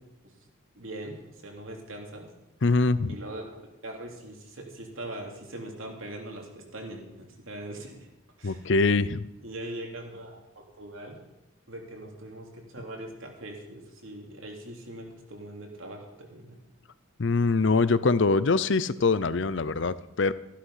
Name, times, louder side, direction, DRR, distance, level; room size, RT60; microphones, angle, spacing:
voice 1, 0.8-1.1 1.4-2.3 3.0-8.1 8.4-8.7 9.4-11.2 11.7-16.6, right 1 dB, 70° right, 1 dB, 3.1 m, -41 dB
voice 2, 2.6-3.2 8.4-9.3 17.2-20.3, left 3 dB, 55° left, 16 dB, 0.6 m, -23 dB
14.5 x 11.5 x 5.7 m, 0.93 s
head